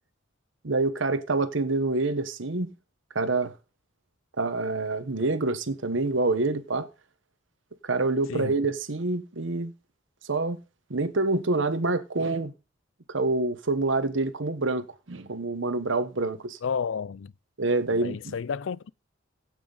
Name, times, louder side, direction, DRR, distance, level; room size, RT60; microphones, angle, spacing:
voice 1, 0.6-2.7 3.1-3.5 4.4-6.9 7.8-9.7 10.2-10.6 10.9-12.5 13.1-16.6 17.6-18.4, right 3 dB, 75° right, 1.1 m, -27 dB
voice 2, 16.6-17.3 18.0-18.9, left 6 dB, 80° left, 0.4 m, -31 dB
16.0 x 6.1 x 3.9 m
head